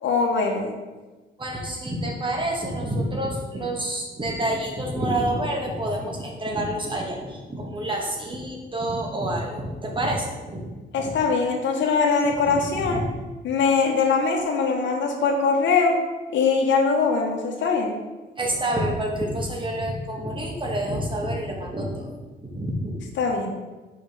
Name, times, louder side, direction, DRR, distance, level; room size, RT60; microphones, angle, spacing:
voice 1, 0.0-0.7 10.9-13.0 13.4-16.0 16.3-17.9 23.2-23.5, left 4 dB, 65° left, 1 dB, 1.2 m, -22 dB
voice 2, 1.4-10.7 11.0-11.1 12.5-13.0 18.4-23.0, right 1 dB, 25° right, 0 dB, 1.6 m, -28 dB
5.2 x 4.8 x 4.9 m, 1.2 s
cardioid pair, 90°, 20 cm